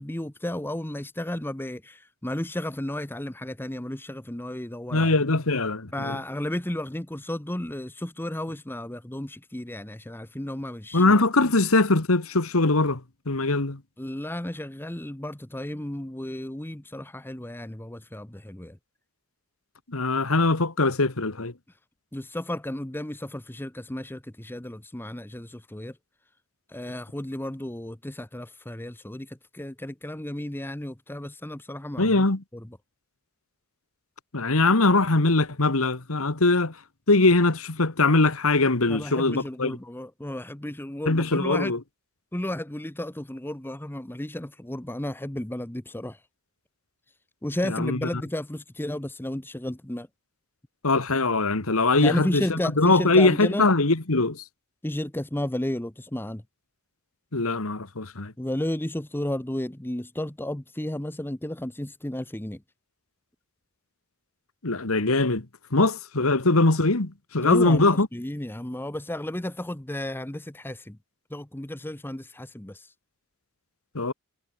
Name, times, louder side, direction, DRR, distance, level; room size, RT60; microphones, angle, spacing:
voice 1, 0.0-5.1 5.9-11.1 14.0-18.8 22.1-26.0 26.7-32.3 32.5-32.7 38.9-41.7 42.3-46.2 47.4-50.1 51.9-53.7 54.8-56.4 58.4-62.6 67.4-71.0 71.3-72.9, left 1 dB, 10° left, 0.9 m, -33 dB
voice 2, 4.9-6.2 10.9-13.0 13.3-13.8 19.9-21.5 32.0-32.4 34.3-36.7 37.1-39.8 41.1-41.8 47.6-48.0 50.8-54.4 57.3-58.3 64.6-65.5 65.7-68.1 74.0-74.1, left 2 dB, 70° left, 1.8 m, -22 dB
head